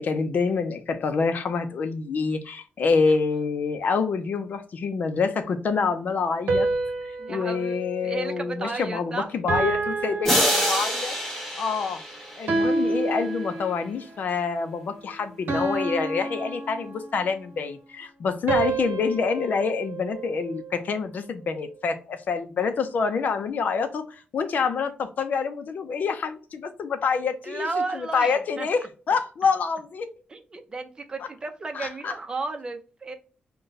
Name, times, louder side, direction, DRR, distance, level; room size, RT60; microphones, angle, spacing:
voice 1, 0.0-6.7 7.0-11.2 11.6-12.0 12.4-30.1 31.7-32.1, left 5 dB, 55° left, 0.6 m, -27 dB
sound 1, 6.5-9.0 9.5-11.2 12.5-14.0 15.5-17.3 18.5-20.8, right 3 dB, 65° right, 0.8 m, -29 dB
voice 2, 7.2-9.3 12.5-13.0 27.4-28.7 30.3-33.1, right 3 dB, 25° right, 0.6 m, -34 dB
sound 2, 10.2-12.9, equal, 5° left, 1.1 m, -26 dB
5.3 x 2.3 x 3.9 m
wide cardioid pair, 170°, 3 cm